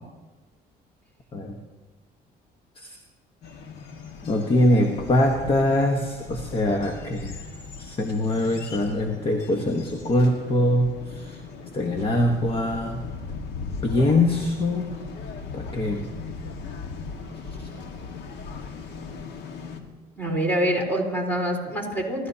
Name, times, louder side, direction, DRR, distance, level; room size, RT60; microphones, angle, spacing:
sound 1, 3.4-19.8, left 4 dB, 80° left, 1.7 m, -38 dB
voice 1, 4.3-7.4 7.8-10.9 11.7-13.0 13.8-14.9 15.5-16.0, left 1 dB, 30° left, 2 dB, 1.3 m, -23 dB
voice 2, 20.2-22.3, right 1 dB, 10° left, 0 dB, 4.0 m, -25 dB
28.5 x 13.0 x 2.8 m, 1.3 s
cardioid pair, 110°, 17 cm